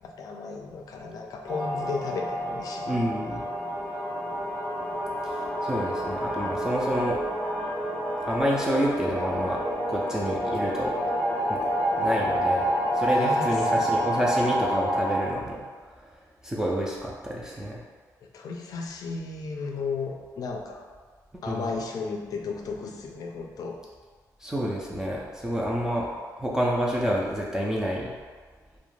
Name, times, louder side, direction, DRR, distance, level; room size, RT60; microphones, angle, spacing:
voice 1, 0.0-3.4 13.0-14.1 18.3-20.9 21.4-23.8, left 4 dB, 60° left, 2 dB, 0.4 m, -34 dB
sound 1, 1.5-15.2, equal, 20° left, 0.7 m, -28 dB
voice 2, 2.9-3.5 5.2-7.2 8.3-9.6 9.9-10.9 11.5-11.7 12.0-16.1 16.4-17.8 21.5-21.7 24.4-26.1 26.4-28.2, equal, 10° right, -5 dB, 0.3 m, -28 dB
2.3 x 2.1 x 3.1 m, 1.5 s
cardioid pair, 95°, 7 cm